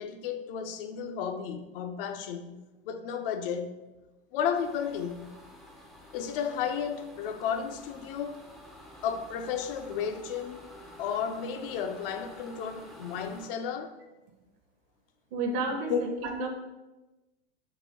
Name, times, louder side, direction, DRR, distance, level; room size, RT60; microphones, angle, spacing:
voice 1, 0.0-2.6 2.8-3.7 4.3-5.3 6.1-8.4 9.0-10.6 11.0-13.9 15.9-16.0, left 7 dB, 55° left, 0.5 m, -33 dB
sound 1, 4.5-13.5, equal, ahead, 0.4 m, -50 dB
voice 2, 15.3-16.5, right 3 dB, 50° right, 0.8 m, -31 dB
4.0 x 2.8 x 3.7 m
hypercardioid pair, 100°, 33 cm